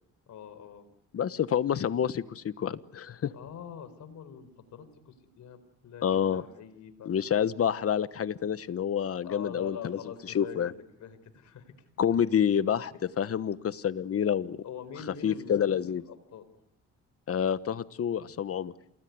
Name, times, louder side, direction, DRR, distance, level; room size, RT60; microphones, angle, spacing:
voice 1, 0.3-0.9 3.3-7.1 9.2-11.7 12.1-12.2 14.6-16.4, left 7 dB, 70° left, 11 dB, 4.6 m, -44 dB
voice 2, 1.1-3.3 6.0-6.4 7.0-10.0 10.3-10.7 12.0-14.6 15.2-16.0 17.3-18.7, left 8 dB, 50° left, 15 dB, 1.2 m, -28 dB
28.5 x 20.0 x 9.6 m, 0.80 s
cardioid pair, 90°, 30 cm